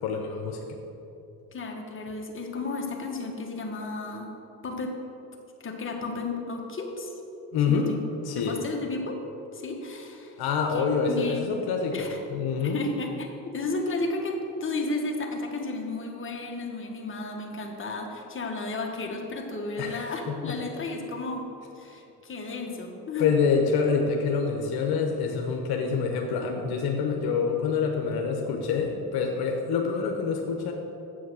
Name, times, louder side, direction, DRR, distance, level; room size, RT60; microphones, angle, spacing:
voice 1, 0.0-0.8 7.5-7.9 8.2-8.6 10.4-12.8 19.8-20.6 23.2-30.7, left 5 dB, 75° left, 2 dB, 1.0 m, -26 dB
voice 2, 1.5-4.3 4.6-4.9 5.6-7.1 7.7-8.0 8.4-9.2 9.5-10.4 10.7-11.5 11.9-12.2 12.6-21.5 21.7-23.3, left 3 dB, 30° left, 1 dB, 1.5 m, -33 dB
7.7 x 6.2 x 6.3 m, 2.8 s
supercardioid pair, 80°, 38 cm